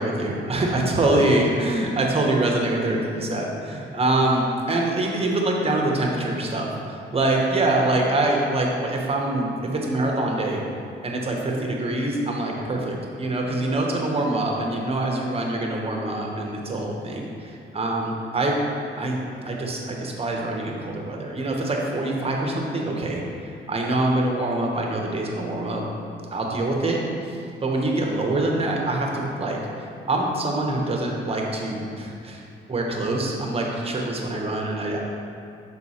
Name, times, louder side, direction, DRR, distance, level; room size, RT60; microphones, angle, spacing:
voice 1, 0.0-10.6 11.0-18.6 19.0-19.2 19.4-25.8 26.3-32.4 32.7-35.0, right 2 dB, 30° right, -1 dB, 1.0 m, -25 dB
6.1 x 3.9 x 4.3 m, 2.5 s
cardioid pair, 90°, 20 cm